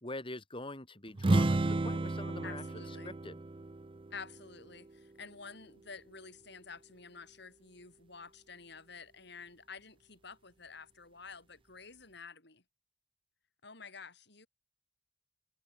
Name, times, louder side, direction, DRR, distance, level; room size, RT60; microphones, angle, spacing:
voice 1, 0.0-3.4, left 2 dB, 30° left, 4.3 m, -44 dB
sound 1, 1.2-4.9, right 2 dB, 25° right, 0.5 m, -32 dB
voice 2, 2.4-3.1 4.1-12.6 13.6-14.5, left 5 dB, 60° left, 6.8 m, -50 dB
head